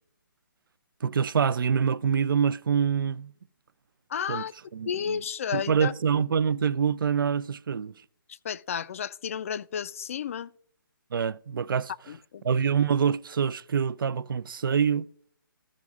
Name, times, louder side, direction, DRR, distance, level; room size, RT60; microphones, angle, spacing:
voice 1, 1.0-3.3 4.3-4.4 4.7-5.2 5.5-7.9 11.1-11.9 12.4-15.1, right 7 dB, 70° right, 0.5 m, -25 dB
voice 2, 4.1-4.5 4.9-5.9 8.3-10.5 12.1-12.4, left 8 dB, 40° left, 0.4 m, -32 dB
15.5 x 6.1 x 2.4 m
hypercardioid pair, 160°, 12 cm